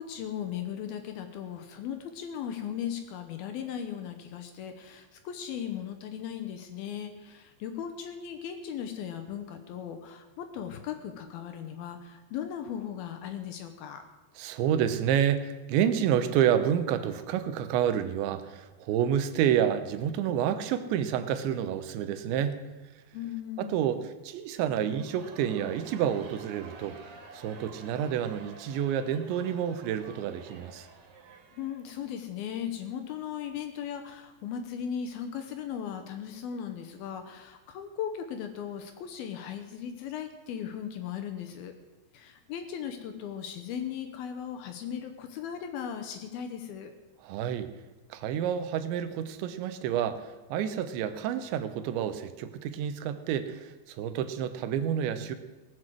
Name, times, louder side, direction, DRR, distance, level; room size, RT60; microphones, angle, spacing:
voice 1, 0.0-14.0 23.1-23.9 31.5-41.7 42.1-46.9, left 8 dB, 70° left, 7 dB, 2.4 m, -37 dB
voice 2, 14.4-22.6 23.6-27.0 27.3-30.9 47.2-47.7 48.1-55.4, right 9 dB, 90° right, 10 dB, 3.2 m, -29 dB
Crowd, 24.9-32.2, right 4 dB, 65° right, 4.1 m, -50 dB
18.5 x 7.9 x 7.6 m, 1.2 s
omnidirectional pair, 5.1 m